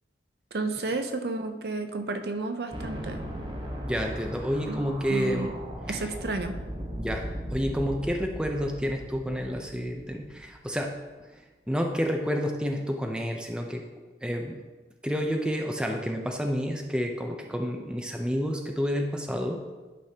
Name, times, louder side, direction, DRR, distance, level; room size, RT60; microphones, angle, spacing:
voice 1, 0.5-3.2 4.7-4.8 5.1-5.5 5.9-6.5, right 2 dB, 60° right, 7 dB, 0.6 m, -32 dB
sound 1, 2.7-10.8, equal, 25° right, 0.9 m, -38 dB
voice 2, 3.8-5.5 5.9-6.0 7.0-7.2 7.5-10.9 11.7-13.8 14.2-14.6 15.0-19.6, equal, 5° right, 2 dB, 0.5 m, -29 dB
11.0 x 5.0 x 2.8 m, 1.3 s
head